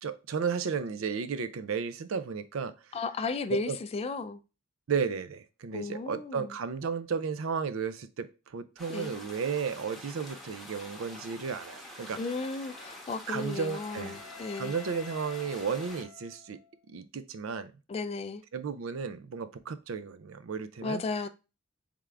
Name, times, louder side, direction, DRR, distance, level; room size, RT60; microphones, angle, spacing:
voice 1, 0.0-2.7 3.5-3.8 4.9-12.2 13.3-14.2 14.6-16.6 16.9-17.7 18.5-21.0, right 6 dB, 80° right, 0.4 m, -33 dB
voice 2, 2.9-4.4 5.7-6.5 8.9-9.1 12.2-14.7 17.9-18.4 20.8-21.3, left 3 dB, 30° left, 0.3 m, -34 dB
sound 1, 8.8-16.0, left 1 dB, ahead, 0.9 m, -47 dB
Wind instrument woodwind instrument, 12.6-16.8, left 7 dB, 75° left, 0.6 m, -50 dB
3.7 x 3.5 x 3.3 m
head